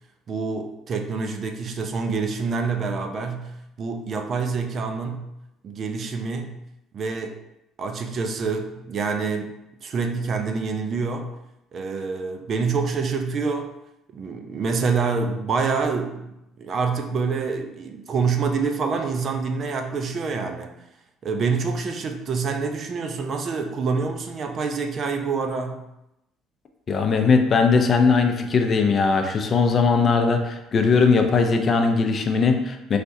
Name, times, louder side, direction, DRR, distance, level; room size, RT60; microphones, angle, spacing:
voice 1, 0.3-5.3 5.6-6.6 6.9-7.4 7.8-9.5 9.8-11.3 11.7-13.7 14.1-16.3 16.6-20.7 21.2-25.8, right 4 dB, 45° right, 5 dB, 0.5 m, -26 dB
voice 2, 26.9-33.0, left 4 dB, 40° left, 5 dB, 0.5 m, -19 dB
4.2 x 3.3 x 2.7 m, 0.87 s
figure-of-eight pair, 55°, 0 cm